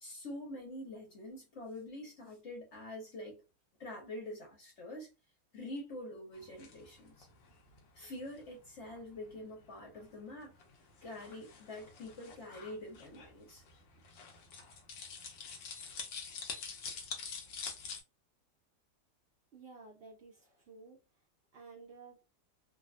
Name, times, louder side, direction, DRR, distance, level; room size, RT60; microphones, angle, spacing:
voice 1, 0.0-3.4 3.8-5.1 5.5-7.3 7.9-10.5 11.0-13.6, left 1 dB, 50° left, 1.1 m, -46 dB
sound 1, 6.3-18.0, left 5 dB, 85° left, 1.4 m, -47 dB
voice 2, 19.5-21.3 21.5-22.3, right 4 dB, 85° right, 0.5 m, -54 dB
3.3 x 2.0 x 2.4 m
omnidirectional pair, 1.9 m